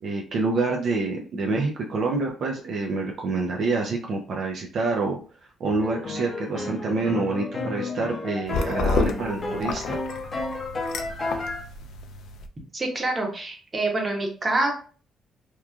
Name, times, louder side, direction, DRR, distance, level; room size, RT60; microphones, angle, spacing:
voice 1, 0.0-5.2 5.6-10.0, right 3 dB, 60° right, 0 dB, 0.4 m, -27 dB
sound 1, 5.6-11.6, left 2 dB, 40° left, 0.6 m, -32 dB
sound 2, 8.5-12.5, left 4 dB, 75° left, 0.3 m, -30 dB
voice 2, 12.7-14.7, right 2 dB, 25° right, 1 dB, 0.9 m, -26 dB
2.9 x 2.3 x 2.3 m, 0.39 s
cardioid pair, 90°, 0 cm